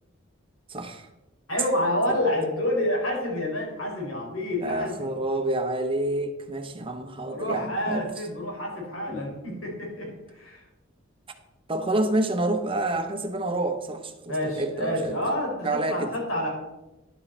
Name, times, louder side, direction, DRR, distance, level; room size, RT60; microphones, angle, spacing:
voice 1, 0.7-1.1 2.1-2.2 4.6-8.0 9.1-9.3 11.7-15.2 15.6-16.1, right 2 dB, 25° right, 6 dB, 0.8 m, -28 dB
voice 2, 1.5-4.9 7.3-10.6 14.3-16.5, left 1 dB, 90° left, -2 dB, 3.9 m, -28 dB
11.0 x 7.6 x 4.3 m, 1.0 s
head